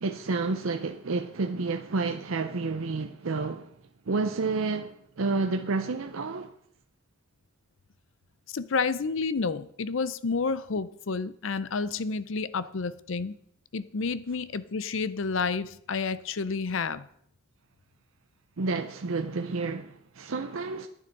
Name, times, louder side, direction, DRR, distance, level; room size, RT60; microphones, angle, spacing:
voice 1, 0.0-3.7 4.1-6.5 18.6-20.9, right 3 dB, 85° right, 0.7 m, -30 dB
voice 2, 8.5-13.4 13.7-17.0, left 4 dB, 70° left, 0.6 m, -30 dB
11.0 x 9.3 x 5.3 m
head